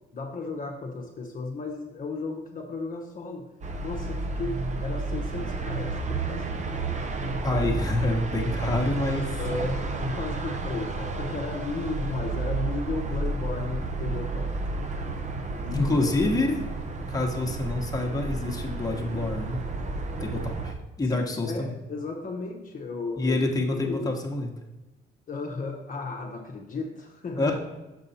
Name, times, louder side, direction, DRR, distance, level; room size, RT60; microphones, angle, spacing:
voice 1, 0.1-3.5 3.8-7.2 7.5-7.7 9.1-14.5 15.6-16.0 21.1-23.4 23.8-24.2 25.3-27.6, left 3 dB, 45° left, 0 dB, 0.9 m, -34 dB
sound 1, 3.6-20.7, right 3 dB, 35° right, 0.8 m, -31 dB
voice 2, 7.4-9.2 15.7-16.6 17.1-19.6 20.2-21.8 23.2-24.5 27.4-27.6, left 2 dB, 20° left, 0 dB, 1.2 m, -27 dB
6.4 x 5.4 x 4.2 m, 1.1 s
cardioid pair, 90°, 20 cm